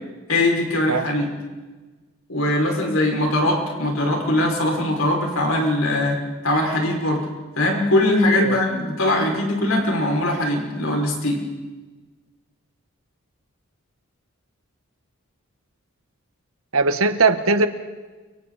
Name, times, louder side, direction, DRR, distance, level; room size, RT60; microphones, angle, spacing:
voice 1, 0.3-1.3 2.3-7.3 7.6-11.4, left 1 dB, 75° left, 0 dB, 5.8 m, -21 dB
voice 2, 16.7-17.7, right 3 dB, 80° right, 9 dB, 1.4 m, -19 dB
30.0 x 24.5 x 4.2 m, 1.3 s
head